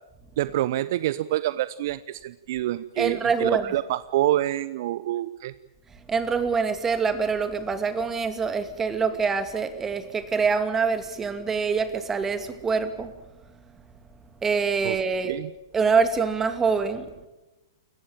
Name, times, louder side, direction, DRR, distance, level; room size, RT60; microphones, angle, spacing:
voice 1, 0.4-5.5 14.8-15.0 15.2-15.5, right 14 dB, 50° right, 16 dB, 0.8 m, -27 dB
voice 2, 3.0-3.7 6.1-13.1 14.4-15.4 15.7-17.1, right 5 dB, 15° right, 10 dB, 2.5 m, -25 dB
29.0 x 15.0 x 9.0 m, 1.0 s
figure-of-eight pair, 110°, 2 cm